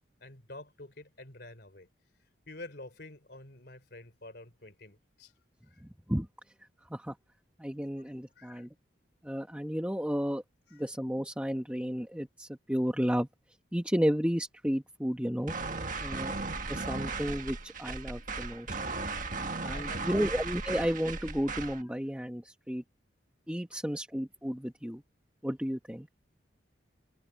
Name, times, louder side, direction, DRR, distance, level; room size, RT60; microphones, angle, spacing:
voice 1, 0.2-1.9 2.2-5.3 5.7-5.8 8.4-8.7 10.7-10.8 15.7-16.3 16.9-17.0 19.5-20.3, left 2 dB, 55° left, 3.6 m, -49 dB
voice 2, 5.8-6.3 6.6-7.2 7.6-8.7 9.2-10.4 10.7-13.3 13.7-15.5 16.0-16.3 16.7-18.7 19.6-22.8 23.5-25.0 25.4-26.1, equal, 5° right, 1.2 m, -32 dB
sound 1, 15.5-21.8, right 3 dB, 45° right, 1.7 m, -36 dB
head